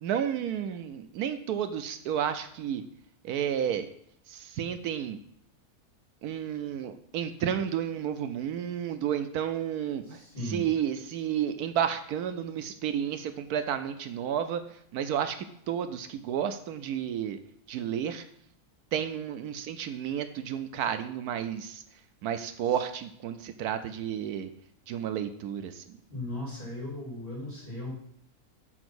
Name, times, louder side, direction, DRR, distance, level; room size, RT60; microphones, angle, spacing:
voice 1, 0.0-2.8 3.2-3.9 4.3-5.2 6.2-14.6 14.9-17.4 17.7-18.2 18.9-21.8 22.2-24.5 24.9-25.8, right 9 dB, 80° right, 10 dB, 1.1 m, -31 dB
voice 2, 10.1-10.6 22.6-22.7 26.1-27.9, left 1 dB, 35° left, -5 dB, 4.2 m, -37 dB
8.0 x 4.6 x 6.1 m, 0.72 s
omnidirectional pair, 1.7 m